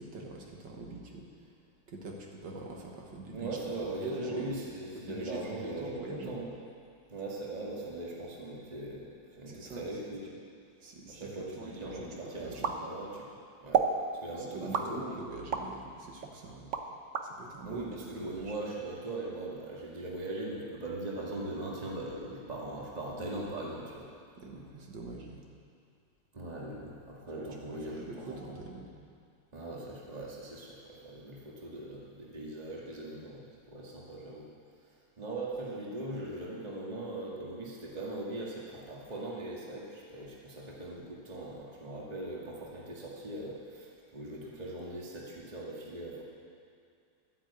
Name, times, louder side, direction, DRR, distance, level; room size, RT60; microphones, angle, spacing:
voice 1, 0.0-1.5 1.9-4.5 5.0-6.3 9.4-9.9 10.8-12.7 14.4-16.7 17.2-18.5 24.4-25.4 27.4-28.9, right 2 dB, 75° right, -1 dB, 2.1 m, -44 dB
voice 2, 3.3-6.5 7.1-10.4 11.1-13.8 14.2-15.0 17.7-24.1 26.3-28.6 29.5-34.5 35.2-46.2, right 2 dB, 20° right, -4 dB, 1.9 m, -40 dB
sound 1, 12.6-13.3 13.7-14.0 14.7-15.7 16.2-17.3, right 6 dB, 50° right, 1.0 m, -30 dB
12.0 x 9.9 x 8.3 m, 2.4 s
omnidirectional pair, 2.0 m